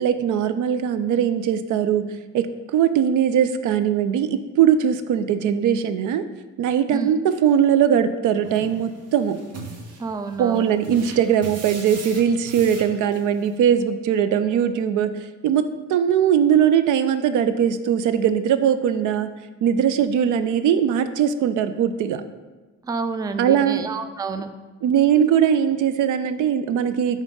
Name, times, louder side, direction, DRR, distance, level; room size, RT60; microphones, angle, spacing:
voice 1, 0.0-2.1 2.3-6.2 6.6-9.4 10.4-15.6 15.9-19.3 19.6-22.2 23.4-23.8 24.8-27.2, right 9 dB, 80° right, 11 dB, 0.5 m, -20 dB
sound 1, 8.4-13.5, right 3 dB, 55° right, 1.1 m, -40 dB
voice 2, 10.0-10.7 22.9-24.5, right 4 dB, 15° right, 9 dB, 0.3 m, -29 dB
5.2 x 3.7 x 5.2 m, 1.2 s
cardioid pair, 90°, 30 cm